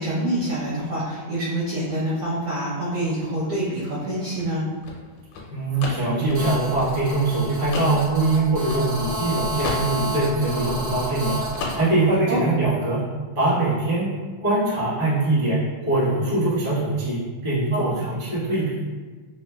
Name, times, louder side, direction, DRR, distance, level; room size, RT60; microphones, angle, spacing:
voice 1, 0.0-4.6 12.3-12.4 17.7-17.9, right 1 dB, 90° right, -12 dB, 1.2 m, -26 dB
sound 1, 4.0-9.3 9.6-11.2 11.5-12.2, left 3 dB, 80° left, 1.8 m, -34 dB
voice 2, 5.5-11.3 11.7-13.0 13.3-14.1 14.4-18.7, right 2 dB, 45° right, -12 dB, 0.6 m, -22 dB
Telephone, 6.3-11.8, right 1 dB, 70° right, 1.3 m, -30 dB
5.0 x 2.0 x 2.2 m, 1.4 s
omnidirectional pair, 3.7 m